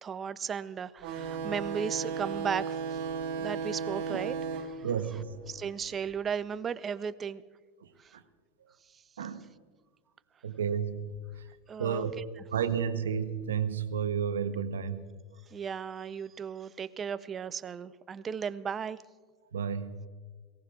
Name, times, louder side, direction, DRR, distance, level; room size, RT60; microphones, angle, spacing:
voice 1, 0.0-3.0 3.4-4.3 4.7-4.9 5.5-7.4 8.0-8.2 8.9-9.0 11.7-12.0 15.5-19.0, right 7 dB, 30° right, 15 dB, 0.6 m, -35 dB
sound 1, 1.0-6.2, right 6 dB, 60° right, 1.8 m, -36 dB
voice 2, 4.8-5.3 7.8-8.2 9.2-9.5 10.4-11.5 11.8-12.1 12.5-15.1 19.5-20.0, right 7 dB, 80° right, 10 dB, 1.0 m, -32 dB
23.0 x 17.0 x 2.5 m, 1.5 s
hypercardioid pair, 85°, 0 cm